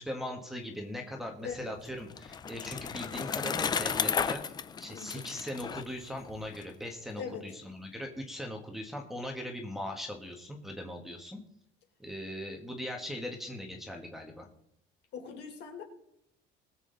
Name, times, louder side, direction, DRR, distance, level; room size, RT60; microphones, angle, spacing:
voice 1, 0.0-4.4 4.8-11.4 12.0-14.5, left 1 dB, ahead, 0 dB, 1.4 m, -40 dB
voice 2, 1.4-1.7 4.9-5.3 7.2-7.5 15.1-15.8, left 6 dB, 60° left, 2 dB, 3.8 m, -41 dB
Bicycle, 1.6-6.6, left 6 dB, 20° left, 0.5 m, -34 dB
21.0 x 7.6 x 3.9 m, 0.77 s
cardioid pair, 165°, 20 cm